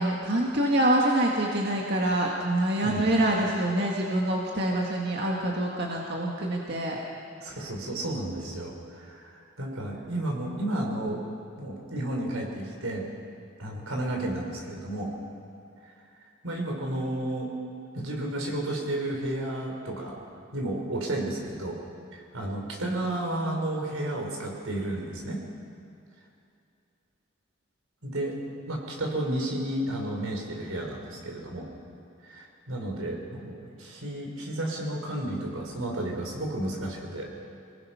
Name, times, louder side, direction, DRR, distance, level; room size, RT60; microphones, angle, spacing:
voice 1, 0.0-7.0, right 1 dB, 50° right, -2 dB, 1.9 m, -26 dB
voice 2, 7.4-11.2 11.6-13.0 13.6-15.1 16.4-17.5 17.9-20.2 20.5-21.8 22.1-25.4 28.0-28.4 28.7-31.7 32.2-37.3, right 1 dB, 85° right, 1 dB, 4.3 m, -32 dB
25.0 x 19.0 x 5.8 m, 2.5 s
head